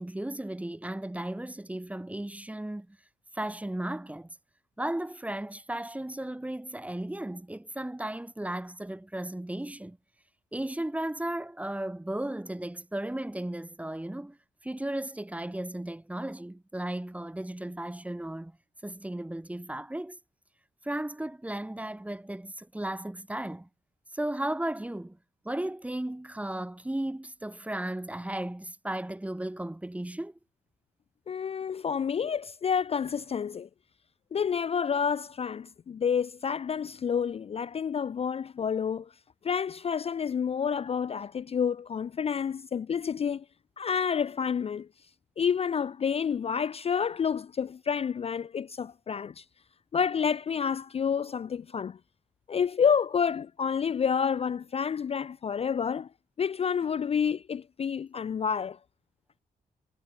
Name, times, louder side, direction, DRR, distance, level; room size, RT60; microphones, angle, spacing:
voice 1, 0.0-2.9 3.3-4.3 4.8-10.0 10.5-14.4 14.6-18.5 18.8-20.2 20.8-23.7 24.1-25.2 25.4-30.3, right 1 dB, 10° right, 0.8 m, -35 dB
voice 2, 31.3-33.7 34.3-39.1 39.4-43.4 43.8-44.9 45.4-49.4 49.9-52.0 52.5-56.1 56.4-58.8, left 7 dB, 40° left, 0.4 m, -29 dB
cardioid pair, 60°, 16 cm